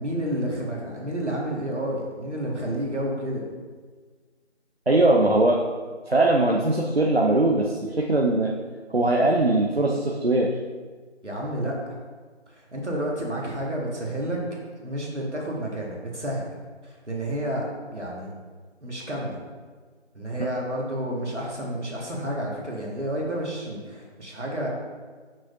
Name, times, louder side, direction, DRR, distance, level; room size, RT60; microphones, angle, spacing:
voice 1, 0.0-3.4 11.2-12.0 12.5-14.4 14.8-16.4 16.8-17.7 17.9-18.3 18.8-19.4 20.1-24.7, right 1 dB, 75° right, -2 dB, 1.8 m, -30 dB
voice 2, 4.9-5.6 6.1-8.5 8.9-10.5, right 2 dB, 55° right, -1 dB, 0.6 m, -21 dB
6.2 x 6.1 x 2.6 m, 1.5 s
figure-of-eight pair, 180°, 35 cm